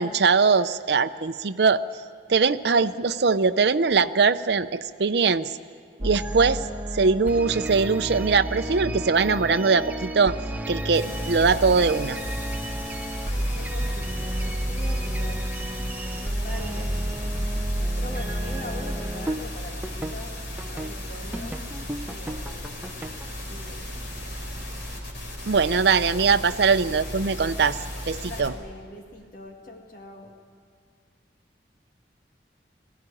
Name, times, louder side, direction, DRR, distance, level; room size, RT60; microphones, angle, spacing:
voice 1, 0.0-1.8 2.3-5.5 6.0-6.6 6.9-10.4 10.7-12.2 25.5-27.8 28.1-28.5, right 4 dB, 70° right, 10 dB, 0.6 m, -21 dB
sound 1, 6.0-20.2 20.6-20.9 21.3-23.4, right 1 dB, 10° right, 0.7 m, -31 dB
sound 2, 10.9-28.5, equal, 90° left, 4.0 m, -36 dB
voice 2, 13.2-15.4 16.2-17.2 18.0-20.3 20.7-21.6 22.1-23.0 23.5-24.0 28.3-30.3, left 1 dB, 50° left, 2 dB, 1.9 m, -42 dB
20.0 x 16.0 x 9.9 m, 2.1 s
head